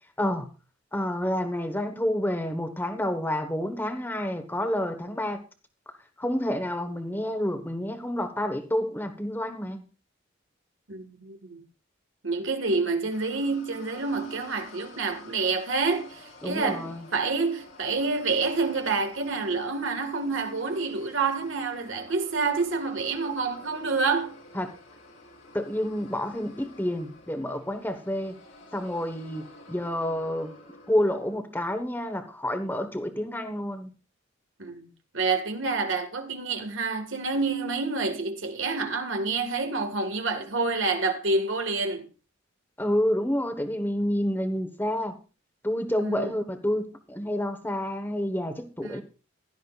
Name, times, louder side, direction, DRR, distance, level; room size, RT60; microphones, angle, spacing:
voice 1, 0.2-0.5 0.9-5.4 6.2-9.8 16.4-17.0 24.5-24.7 25.5-28.3 28.7-29.4 29.7-30.5 30.9-33.9 42.8-45.2 45.6-49.0, left 1 dB, 10° left, 1.1 m, -29 dB
voice 2, 10.9-11.6 12.2-24.4 34.6-34.8 35.1-42.1 46.0-46.4 48.8-49.0, right 4 dB, 70° right, 1.7 m, -28 dB
sound 1, 13.1-31.4, left 2 dB, 75° left, 2.9 m, -50 dB
16.0 x 12.0 x 2.4 m
head